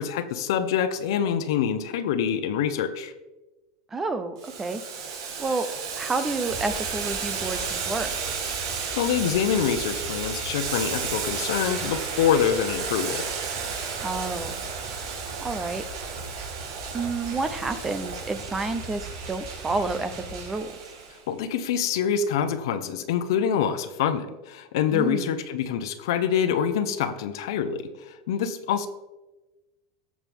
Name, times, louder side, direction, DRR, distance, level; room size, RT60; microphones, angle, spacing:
voice 1, 0.0-3.1 8.6-13.3 21.3-28.9, left 8 dB, 70° left, 10 dB, 1.0 m, -26 dB
voice 2, 3.9-5.7 6.0-8.1 14.0-14.6 15.4-15.8 16.9-20.7 24.9-25.4, right 3 dB, 10° right, 11 dB, 0.5 m, -30 dB
Boiling, 4.4-21.2, right 6 dB, 85° right, 3.1 m, -33 dB
sound 1, 6.5-20.5, right 3 dB, 60° right, 3.8 m, -41 dB
17.5 x 7.4 x 3.6 m, 1.1 s
supercardioid pair, 180°, 2 cm